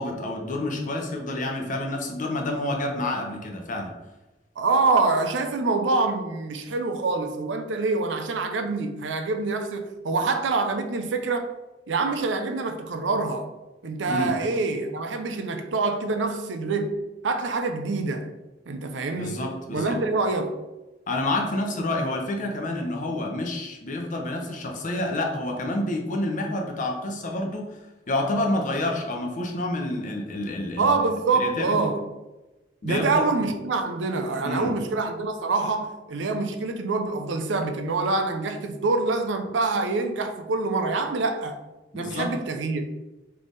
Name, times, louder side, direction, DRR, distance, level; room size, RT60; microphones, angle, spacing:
voice 1, 0.0-3.9 14.1-14.4 19.1-20.0 21.1-30.9 31.3-31.8 32.8-33.3 34.4-34.7 41.9-42.3, left 1 dB, 45° left, 0.8 m, -28 dB
voice 2, 4.6-11.4 11.9-13.5 13.8-17.0 17.2-18.3 18.7-19.4 19.7-20.6 30.8-32.0 32.8-41.6 41.9-42.9, right 3 dB, 75° right, 0.5 m, -25 dB
3.6 x 3.3 x 3.9 m
head